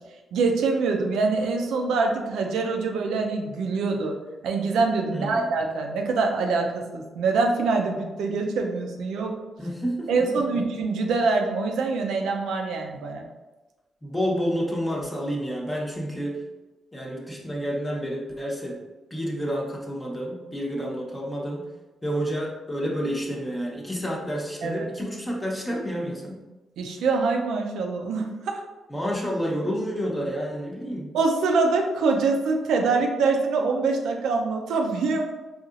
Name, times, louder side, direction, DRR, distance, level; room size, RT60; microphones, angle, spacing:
voice 1, 0.3-4.2 4.4-9.3 10.1-13.3 24.6-24.9 26.8-28.6 31.1-35.3, right 4 dB, 85° right, 2 dB, 0.5 m, -24 dB
voice 2, 5.1-5.5 9.6-10.6 14.0-16.4 16.9-18.8 19.1-21.6 22.0-26.4 28.9-31.1, equal, 20° left, -3 dB, 1.0 m, -29 dB
4.1 x 2.8 x 2.4 m, 1.2 s
supercardioid pair, 55°, 0 cm